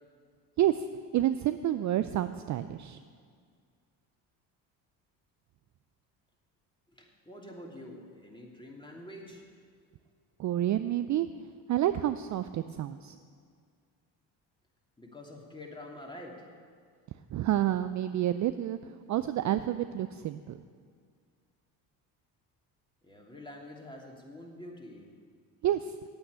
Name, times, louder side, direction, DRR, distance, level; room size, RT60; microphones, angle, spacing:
voice 1, 1.1-3.0 10.4-11.3 11.7-13.2 17.3-18.8 19.1-20.6 25.6-25.9, right 12 dB, 40° right, 11 dB, 0.4 m, -29 dB
voice 2, 6.9-9.5 15.0-16.5 23.0-25.1, left 1 dB, 10° left, -1 dB, 2.7 m, -47 dB
8.9 x 8.8 x 8.2 m, 2.1 s
supercardioid pair, 70°, 46 cm